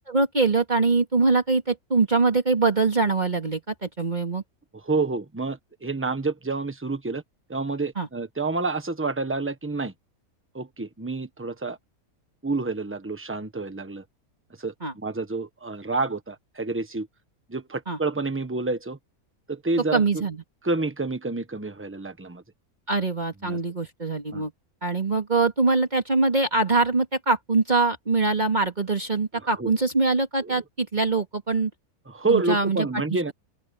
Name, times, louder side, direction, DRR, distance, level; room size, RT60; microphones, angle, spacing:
voice 1, 0.1-4.4 8.0-8.1 14.8-14.9 17.9-18.0 19.9-20.4 22.9-24.5 24.8-31.7 32.3-33.3, right 3 dB, 30° right, 2.2 m, -23 dB
voice 2, 4.8-7.2 7.5-9.9 10.5-11.8 12.4-14.0 14.6-17.1 17.5-19.0 19.5-20.2 20.6-22.4 23.4-23.6 24.3-24.4 29.6-29.7 30.4-30.6 32.1-33.3, right 3 dB, 10° right, 1.2 m, -28 dB
open air
omnidirectional pair, 1.5 m